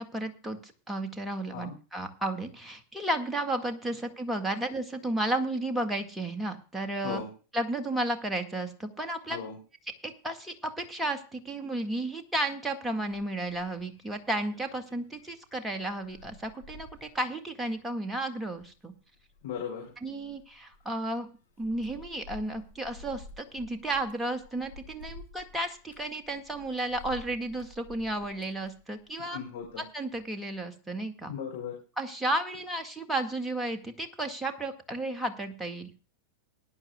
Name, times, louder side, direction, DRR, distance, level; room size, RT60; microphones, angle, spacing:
voice 1, 0.0-7.2 7.5-9.4 10.0-18.9 20.0-21.3 21.6-29.4 29.9-31.3 32.0-35.9, right 1 dB, 5° right, 5 dB, 1.9 m, -33 dB
sound 1, 13.1-29.8 30.2-30.6, left 3 dB, 75° left, 4.5 m, -52 dB
voice 2, 19.4-19.9 29.2-29.9 31.3-31.8, left 7 dB, 55° left, -1 dB, 4.2 m, -37 dB
20.0 x 11.0 x 2.3 m, 0.35 s
figure-of-eight pair, 90°, 0 cm